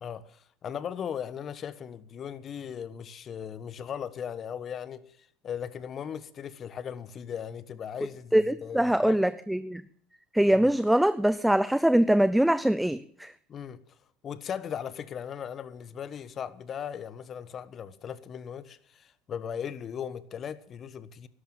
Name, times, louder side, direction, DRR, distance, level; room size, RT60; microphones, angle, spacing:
voice 1, 0.0-8.3 8.6-9.2 10.5-10.7 13.5-13.8 14.2-21.3, left 8 dB, 40° left, 1.3 m, -38 dB
voice 2, 8.3-9.8 10.3-13.3, right 1 dB, 5° right, 0.7 m, -23 dB
12.5 x 11.5 x 9.0 m
supercardioid pair, 105°, 0 cm